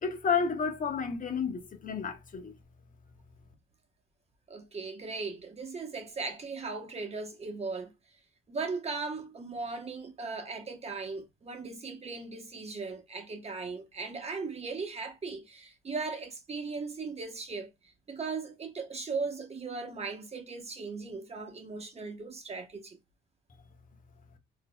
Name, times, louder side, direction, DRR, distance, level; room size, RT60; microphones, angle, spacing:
voice 1, 0.0-2.5, left 6 dB, 40° left, 1.0 m, -31 dB
voice 2, 4.5-7.9 8.5-23.0, right 4 dB, 30° right, 1.0 m, -38 dB
3.8 x 2.8 x 2.2 m
cardioid pair, 90°, 20 cm